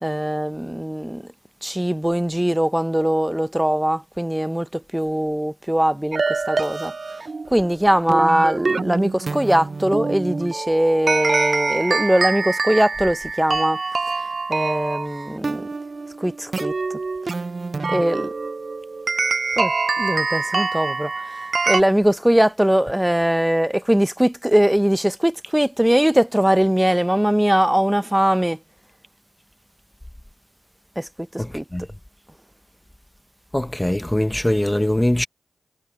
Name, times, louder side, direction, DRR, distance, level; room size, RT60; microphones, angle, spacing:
voice 1, 0.0-1.2 1.6-6.9 7.5-13.8 14.5-15.7 16.2-16.7 17.8-18.3 19.6-19.7 20.0-21.4 21.7-28.6 31.0-31.1 31.3-31.6, right 1 dB, 10° right, 0.9 m, -21 dB
sound 1, 6.1-21.8, right 4 dB, 50° right, 0.5 m, -25 dB
voice 2, 33.5-35.3, left 1 dB, 10° left, 1.3 m, -21 dB
supercardioid pair, 40°, 0 cm